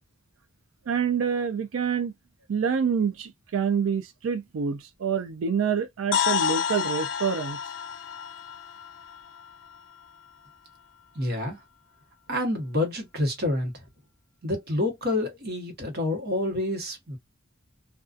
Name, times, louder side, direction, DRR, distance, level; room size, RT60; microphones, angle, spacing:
voice 1, 0.9-2.1 2.5-7.6, right 6 dB, 80° right, 0.4 m, -27 dB
sound 1, 6.1-10.1, left 8 dB, 65° left, 0.4 m, -30 dB
voice 2, 11.1-11.6 12.3-13.7 14.4-17.2, left 1 dB, 55° right, 1.1 m, -28 dB
2.4 x 2.3 x 2.4 m
head